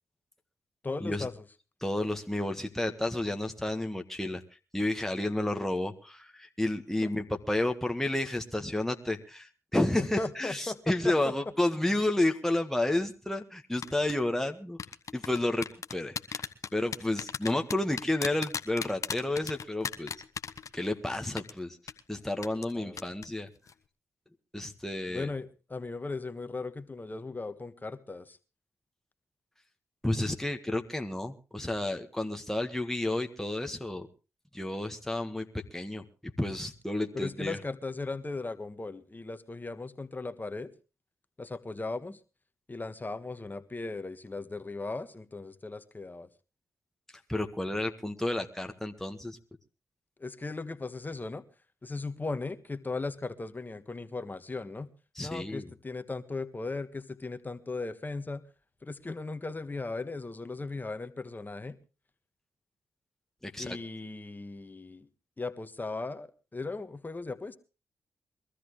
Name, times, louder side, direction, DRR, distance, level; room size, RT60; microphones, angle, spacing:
voice 1, 0.8-1.4 7.0-7.1 10.0-11.3 22.7-23.1 25.1-28.4 37.1-40.7 41.4-42.2 42.7-46.3 50.2-51.4 51.8-54.9 55.2-58.4 58.8-61.8 63.6-65.1 65.4-67.6, left 3 dB, 30° left, 11 dB, 1.6 m, -37 dB
voice 2, 1.8-4.4 4.7-14.8 15.1-20.1 20.7-21.8 22.1-23.5 24.5-25.3 30.0-34.1 34.5-35.5 35.7-36.0 36.4-37.6 47.3-49.4 55.2-55.7 63.4-63.8, left 1 dB, 5° left, 4 dB, 1.7 m, -31 dB
sound 1, 13.8-14.1 14.8-21.1 21.4-21.5 21.9-22.0 22.4-22.7 23.0-23.3 23.6-23.7, left 6 dB, 55° left, 1.2 m, -35 dB
22.5 x 13.5 x 3.3 m, 0.32 s
supercardioid pair, 40°, 6 cm